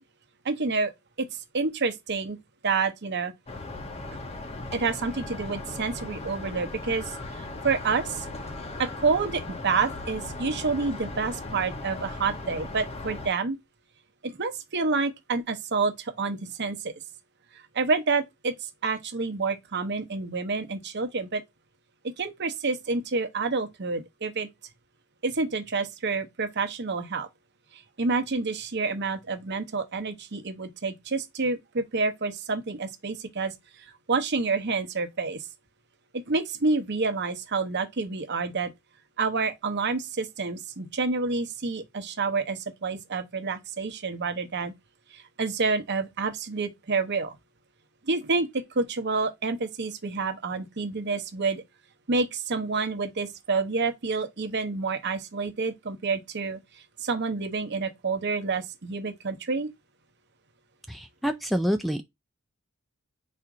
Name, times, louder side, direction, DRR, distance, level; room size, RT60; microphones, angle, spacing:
voice 1, 0.4-0.9 1.2-1.3 1.5-2.4 2.6-3.3 4.7-8.3 8.8-13.6 14.2-16.9 17.7-18.5 18.8-21.4 22.0-24.5 25.2-27.3 27.7-33.5 34.1-35.5 36.1-38.7 39.2-44.7 45.1-47.4 48.1-51.6 52.1-56.6 57.0-59.7, right 4 dB, 55° right, 0.9 m, -28 dB
sound 1, 3.5-13.3, left 2 dB, 30° left, 0.7 m, -38 dB
voice 2, 60.9-62.0, equal, ahead, 0.3 m, -27 dB
4.2 x 2.5 x 4.8 m
head